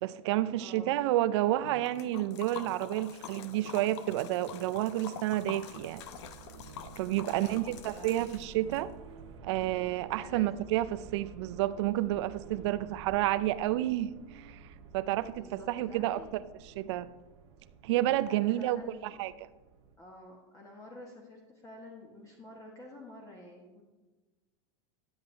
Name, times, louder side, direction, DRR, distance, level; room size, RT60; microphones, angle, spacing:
voice 1, 0.0-6.0 7.0-8.9 9.4-14.6 14.9-16.2 16.8-17.1 17.8-18.8 19.2-19.3, right 14 dB, 70° right, 0.5 m, -30 dB
voice 2, 0.6-0.9 7.2-8.2 10.2-10.5 15.2-16.3 18.3-19.2 20.0-23.8, left 1 dB, 20° left, 1.4 m, -49 dB
Liquid, 1.6-8.8, left 7 dB, 70° left, 0.8 m, -46 dB
sound 1, 5.1-20.0, right 5 dB, 85° right, 1.4 m, -52 dB
10.5 x 7.9 x 3.3 m
supercardioid pair, 130°, 15 cm